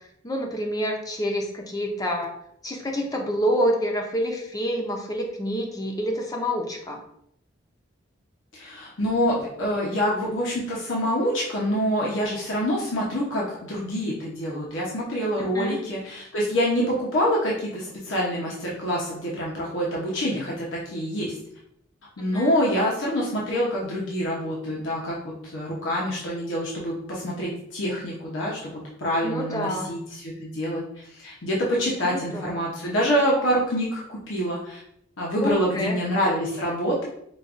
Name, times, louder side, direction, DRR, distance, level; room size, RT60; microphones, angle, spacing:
voice 1, 0.2-2.3 2.6-7.0 15.4-15.8 22.3-22.6 29.2-29.9 32.0-32.6 35.4-36.0, equal, 20° left, 2 dB, 0.6 m, -27 dB
voice 2, 8.5-21.3 22.2-34.8 35.2-37.1, equal, 80° left, -4 dB, 0.8 m, -26 dB
5.1 x 2.3 x 2.5 m, 0.72 s
head